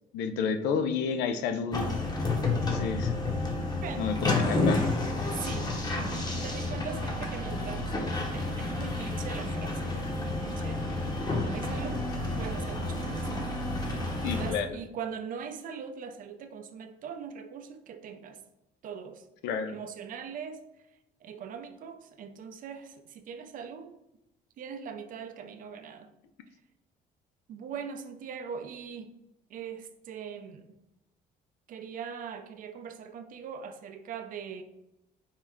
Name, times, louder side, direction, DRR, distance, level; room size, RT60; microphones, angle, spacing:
voice 1, 0.1-1.9 2.7-3.1 4.0-4.8 14.2-14.8 19.4-19.7, left 6 dB, 90° left, 8 dB, 0.4 m, -30 dB
sound 1, 1.7-14.5, left 2 dB, 25° left, 0.8 m, -30 dB
voice 2, 3.8-4.2 5.4-5.7 6.2-7.9 8.3-12.0 12.4-13.3 13.8-18.4 18.8-19.2 19.7-20.7 21.2-23.9 24.6-26.1 27.5-29.1 29.5-30.7 31.7-34.6, right 7 dB, 55° right, 8 dB, 0.5 m, -41 dB
4.5 x 2.1 x 3.5 m, 0.86 s
cardioid pair, 110°, 17 cm